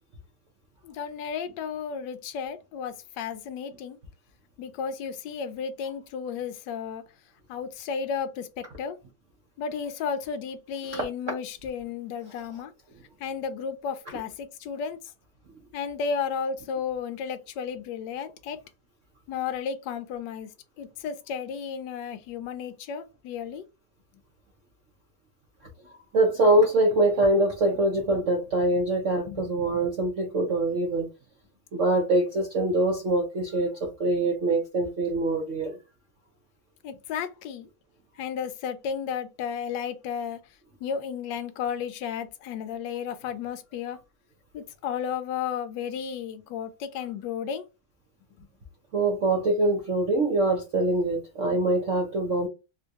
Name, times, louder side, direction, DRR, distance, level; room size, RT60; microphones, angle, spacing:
voice 1, 0.8-4.0 4.6-7.0 7.5-9.0 9.6-12.7 13.2-15.0 15.7-18.6 19.3-20.5 20.8-23.6 29.3-29.5 36.8-37.7 38.2-40.4 40.8-44.0 44.5-47.6 48.4-48.5, left 7 dB, 75° left, 1.1 m, -33 dB
voice 2, 26.1-31.1 31.7-35.8 48.9-52.5, right 2 dB, 70° right, 0.7 m, -24 dB
3.7 x 2.2 x 2.7 m
omnidirectional pair, 2.3 m